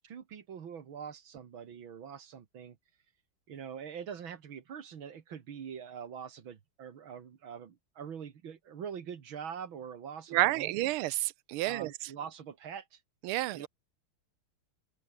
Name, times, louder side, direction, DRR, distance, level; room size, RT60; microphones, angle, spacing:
voice 1, 0.0-2.8 3.5-10.8 11.6-13.0 13.5-13.7, right 7 dB, 70° right, 2.5 m, -44 dB
voice 2, 10.3-11.9 13.2-13.7, right 17 dB, 90° right, 1.5 m, -30 dB
open air
omnidirectional pair, 2.3 m